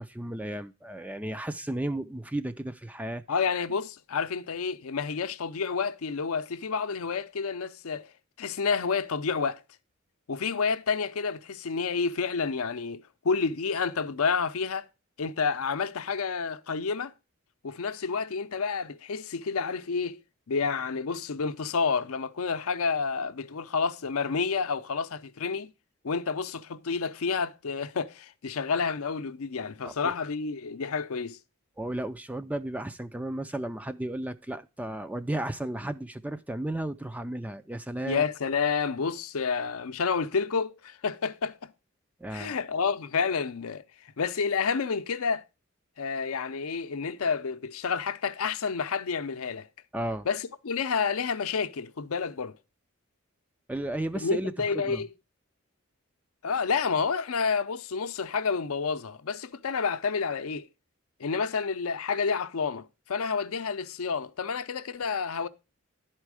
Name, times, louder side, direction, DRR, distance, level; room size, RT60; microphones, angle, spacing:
voice 1, 0.0-3.2 29.8-30.1 31.8-38.2 42.2-42.6 49.9-50.3 53.7-55.0, right 1 dB, 5° right, 0.3 m, -34 dB
voice 2, 3.3-8.1 8.4-9.6 10.3-14.9 15.2-17.1 17.6-20.2 20.5-25.7 26.0-31.4 38.1-41.7 42.3-43.8 44.2-45.4 46.0-49.7 50.3-52.5 54.2-55.1 56.4-60.7 61.2-65.5, left 5 dB, 75° left, 0.6 m, -29 dB
11.0 x 4.5 x 4.7 m
head